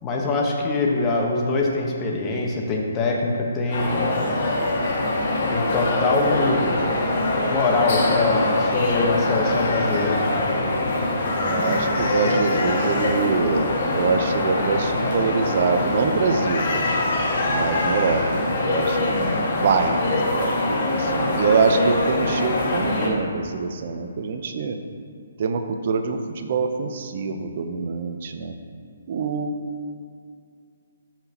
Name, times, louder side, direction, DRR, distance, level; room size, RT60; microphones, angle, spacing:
voice 1, 0.0-4.2 5.5-6.8 7.5-10.2, left 3 dB, 20° left, 0 dB, 1.2 m, -23 dB
sound 1, 3.7-23.1, left 2 dB, 50° left, 2.0 m, -23 dB
voice 2, 11.4-16.7 17.5-18.2 18.6-24.8 25.4-28.5 29.1-29.5, right 5 dB, 50° right, 6 dB, 0.8 m, -24 dB
13.5 x 5.9 x 3.0 m, 2.3 s
hypercardioid pair, 145°, 0 cm